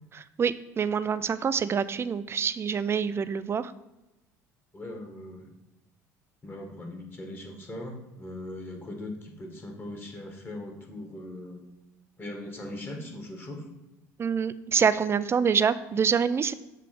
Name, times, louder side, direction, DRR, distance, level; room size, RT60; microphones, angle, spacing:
voice 1, 0.4-3.7 14.2-16.5, right 6 dB, 30° right, 14 dB, 0.4 m, -26 dB
voice 2, 4.7-5.5 6.4-11.6 12.2-13.7, left 1 dB, 25° left, 2 dB, 1.7 m, -40 dB
7.0 x 3.2 x 5.0 m, 0.99 s
hypercardioid pair, 70°, 9 cm